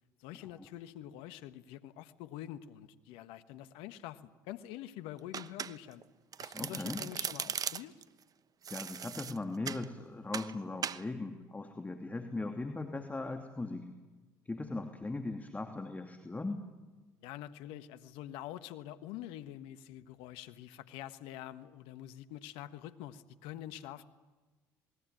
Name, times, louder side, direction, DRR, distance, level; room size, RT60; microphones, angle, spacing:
voice 1, 0.2-6.0 6.4-8.0 17.2-24.1, left 12 dB, 70° left, 12 dB, 1.4 m, -46 dB
Domestic sounds home sounds, 5.3-6.0 6.3-8.0 8.6-9.9 10.3-10.5 10.8-11.0, right 8 dB, 40° right, 1.0 m, -38 dB
voice 2, 6.5-7.0 8.7-13.9 14.4-16.7, left 2 dB, 15° left, 5 dB, 2.8 m, -39 dB
27.5 x 20.5 x 9.2 m, 1.2 s
hypercardioid pair, 65°, 9 cm